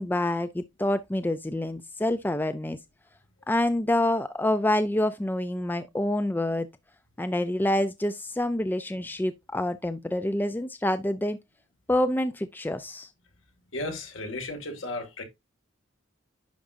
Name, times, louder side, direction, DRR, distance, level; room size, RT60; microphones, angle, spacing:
voice 1, 0.0-2.8 3.5-6.7 7.2-11.4 11.9-13.1, left 1 dB, 10° left, 0.4 m, -27 dB
voice 2, 13.7-15.2, left 2 dB, 70° left, 2.2 m, -34 dB
10.5 x 4.9 x 2.6 m
head